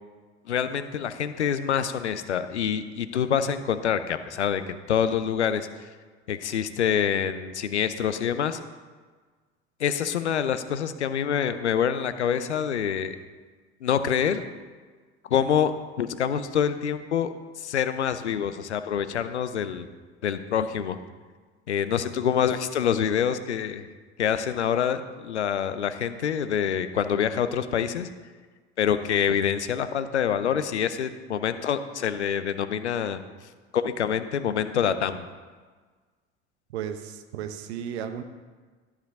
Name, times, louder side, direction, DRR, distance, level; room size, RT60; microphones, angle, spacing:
voice 1, 0.5-5.7 6.3-8.6 9.8-13.2 13.8-14.4 15.3-17.3 17.6-19.8 20.2-21.0 21.7-23.9 24.2-28.1 28.8-33.2 33.7-35.3, left 8 dB, 85° left, 11 dB, 0.6 m, -26 dB
voice 2, 36.7-38.2, right 9 dB, 70° right, 8 dB, 1.0 m, -34 dB
13.0 x 5.0 x 6.7 m, 1.4 s
figure-of-eight pair, 65°, 33 cm